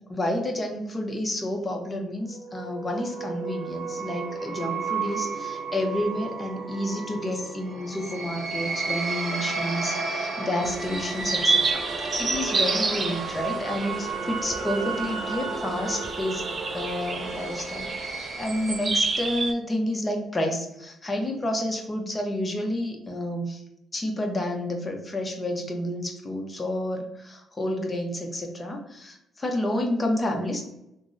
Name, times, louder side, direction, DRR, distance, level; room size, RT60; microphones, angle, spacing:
voice 1, 0.1-11.8 12.2-16.4 16.7-23.6 23.9-30.7, left 1 dB, 25° left, 2 dB, 0.7 m, -30 dB
sound 1, 2.3-19.1, right 4 dB, 60° right, 0.8 m, -33 dB
sound 2, 10.6-19.5, right 3 dB, 40° right, 0.4 m, -30 dB
3.4 x 2.0 x 2.6 m, 0.83 s
cardioid pair, 90°, 0 cm